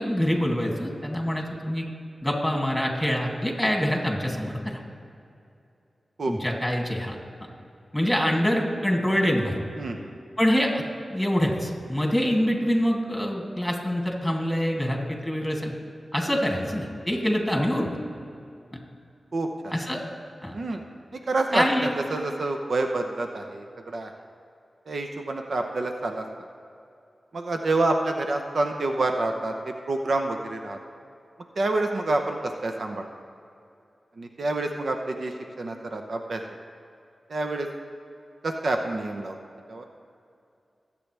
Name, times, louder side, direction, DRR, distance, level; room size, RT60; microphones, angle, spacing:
voice 1, 0.0-1.8 2.2-4.8 6.3-7.2 7.9-9.6 10.4-10.8 11.1-15.7 16.1-17.9 19.7-20.0 20.4-20.5 21.5-21.9, equal, 5° left, 0 dB, 2.6 m, -25 dB
voice 2, 9.8-10.1 17.5-17.7 19.3-19.7 20.5-20.8 21.1-24.1 24.9-26.3 27.3-30.8 31.6-33.1 34.2-36.4 37.3-37.7 38.4-39.4 39.7-39.9, right 2 dB, 70° right, 4 dB, 0.8 m, -28 dB
21.5 x 8.5 x 3.4 m, 2.5 s
cardioid pair, 45°, 0 cm